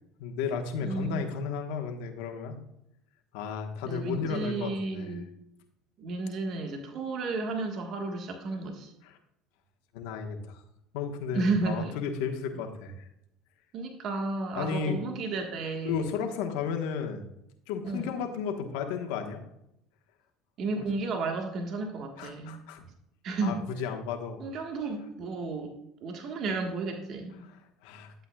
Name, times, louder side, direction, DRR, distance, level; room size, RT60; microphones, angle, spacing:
voice 1, 0.2-2.6 3.3-5.1 9.0-9.2 9.9-10.6 10.9-13.1 14.5-15.0 15.8-17.2 17.7-19.4 20.7-20.9 22.2-22.8 23.4-24.4 27.4-28.1, left 6 dB, 80° left, 4 dB, 1.2 m, -34 dB
voice 2, 0.8-1.3 3.8-5.3 6.0-8.9 11.3-11.9 13.7-16.1 17.8-18.1 20.6-22.6 23.2-23.5 24.4-25.7 26.0-27.4, right 3 dB, 55° right, 3 dB, 1.4 m, -32 dB
11.5 x 8.1 x 2.3 m, 0.80 s
supercardioid pair, 80°, 0 cm